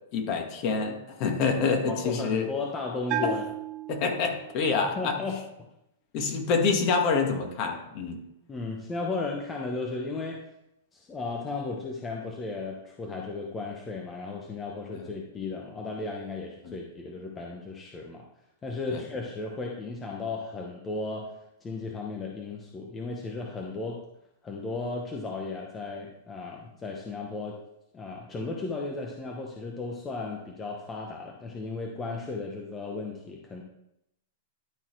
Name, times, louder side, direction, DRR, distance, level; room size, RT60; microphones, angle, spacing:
voice 1, 0.1-2.5 3.2-3.3 3.9-5.1 6.1-8.2 16.6-16.7 18.9-19.0, left 5 dB, 40° left, 3 dB, 1.7 m, -27 dB
voice 2, 1.9-3.5 5.0-5.4 8.5-10.4 10.9-18.3 18.6-21.3 21.6-24.0 24.4-27.6 27.9-33.6, left 3 dB, 15° left, 0 dB, 0.9 m, -35 dB
Bell, 3.1-4.7, right 10 dB, 35° right, 0.6 m, -34 dB
11.5 x 4.1 x 4.5 m, 0.83 s
hypercardioid pair, 145°, 0 cm